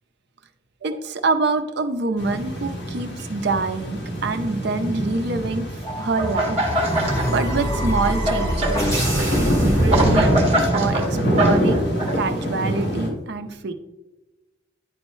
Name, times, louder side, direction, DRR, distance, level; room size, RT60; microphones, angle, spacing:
voice 1, 0.8-5.7 6.0-6.6 7.3-8.9 9.4-11.9 12.1-13.7, right 3 dB, 65° right, 8 dB, 0.6 m, -25 dB
sound 1, 2.2-13.1, equal, 60° left, 2.0 m, -26 dB
sound 2, 5.8-10.8, equal, 15° left, 2.0 m, -24 dB
sound 3, 6.2-7.3 7.6-12.1, right 1 dB, 35° right, 1.4 m, -24 dB
10.5 x 4.3 x 3.1 m, 1.1 s
head